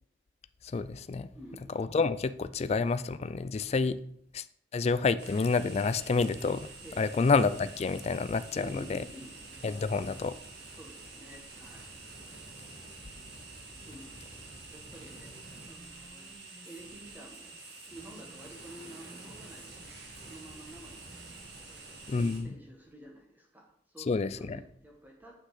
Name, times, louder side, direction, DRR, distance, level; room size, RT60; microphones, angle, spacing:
voice 1, 0.7-1.3 1.8-4.0 4.3-4.4 4.7-6.7 7.0-9.0 9.6-10.3 22.1-22.5 24.1-24.6, left 4 dB, 35° left, 13 dB, 0.3 m, -28 dB
voice 2, 1.3-1.7 6.8-7.1 8.5-9.6 10.7-11.9 13.8-16.3 16.6-17.5 17.9-19.9 20.1-21.1 21.6-22.1 22.4-25.4, right 1 dB, 10° right, -1 dB, 1.4 m, -50 dB
sound 1, 5.2-22.4, right 2 dB, 65° right, 2.0 m, -48 dB
Female speech woman speaking, 15.2-19.9 20.1-20.7 21.0-21.6 21.9-22.6, equal, 10° left, 2.5 m, -58 dB
7.8 x 6.2 x 4.9 m, 0.69 s
head